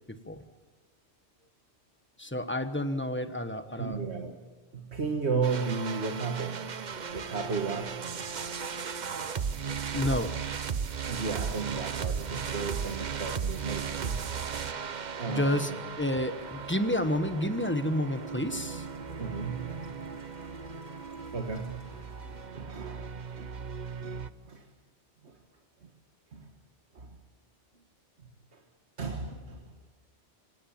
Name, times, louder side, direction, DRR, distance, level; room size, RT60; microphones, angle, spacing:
voice 1, 0.1-0.4 2.2-4.0 9.9-10.4 15.3-15.7 16.0-18.9, left 1 dB, 10° left, 9 dB, 1.1 m, -30 dB
voice 2, 3.8-4.4 4.7-6.7 7.1-8.1 11.1-14.3 15.2-15.8 19.2-19.9 21.3-23.6 24.0-24.6 25.2-25.4 26.3-26.5 26.9-27.2 28.2-28.6 29.0-29.8, right 4 dB, 65° right, 4 dB, 1.9 m, -35 dB
sound 1, 5.4-24.3, right 6 dB, 45° right, 0.8 m, -36 dB
sound 2, 6.9-22.5, left 1 dB, 85° left, 3.8 m, -55 dB
26.0 x 18.5 x 7.3 m, 1.3 s
omnidirectional pair, 1.2 m